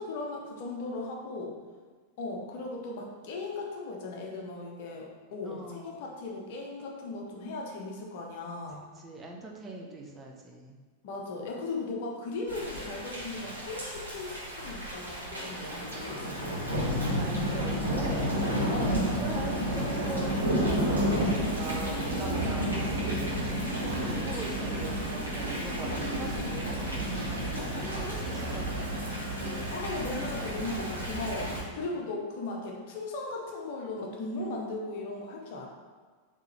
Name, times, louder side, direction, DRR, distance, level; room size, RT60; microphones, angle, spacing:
voice 1, 0.0-1.5 2.2-8.8 11.0-14.3 14.6-16.5 18.7-19.2 29.7-35.7, left 3 dB, 50° left, 0 dB, 0.7 m, -37 dB
voice 2, 5.4-6.1 9.0-10.8 16.8-18.4 19.2-27.2 27.6-28.9 31.3-31.8, right 3 dB, 20° right, 0 dB, 0.6 m, -41 dB
Thunder / Rain, 12.5-31.6, equal, 80° right, 1.1 m, -31 dB
3.8 x 2.9 x 4.3 m, 1.5 s
figure-of-eight pair, 90°, 0 cm